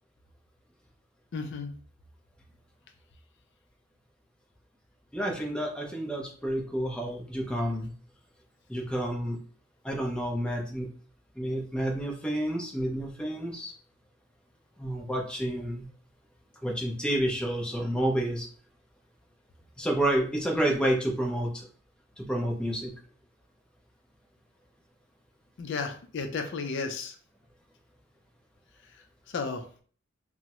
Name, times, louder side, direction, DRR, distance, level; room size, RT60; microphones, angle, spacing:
voice 1, 1.3-1.7 25.6-27.1 29.3-29.6, left 4 dB, 60° left, 6 dB, 0.4 m, -33 dB
voice 2, 5.1-7.9 8.7-9.4 9.8-10.9 11.4-13.7 14.8-15.9 16.6-18.5 19.8-21.7 22.2-22.9, right 1 dB, 5° left, 0 dB, 0.5 m, -29 dB
3.4 x 2.0 x 2.9 m, 0.44 s
head